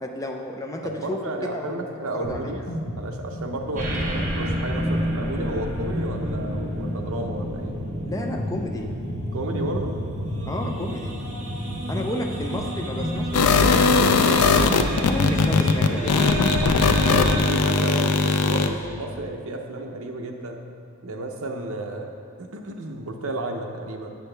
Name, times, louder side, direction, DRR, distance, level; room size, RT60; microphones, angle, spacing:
voice 1, 0.0-1.2 1.5-2.5 8.0-8.9 10.5-11.2 11.9-14.0 15.1-16.5, left 1 dB, 15° left, 2 dB, 0.4 m, -31 dB
voice 2, 0.8-2.6 3.0-7.8 9.3-9.9 14.5-15.1 17.1-20.6 21.0-22.1 22.4-24.2, right 2 dB, 70° right, 3 dB, 0.7 m, -32 dB
sound 1, 2.2-2.4 2.7-16.0, equal, 60° left, 1.2 m, -33 dB
sound 2, 3.8-18.1, right 1 dB, 35° right, 0.9 m, -31 dB
sound 3, 13.3-18.7, left 4 dB, 85° left, 0.4 m, -19 dB
8.7 x 6.2 x 3.4 m, 2.3 s
head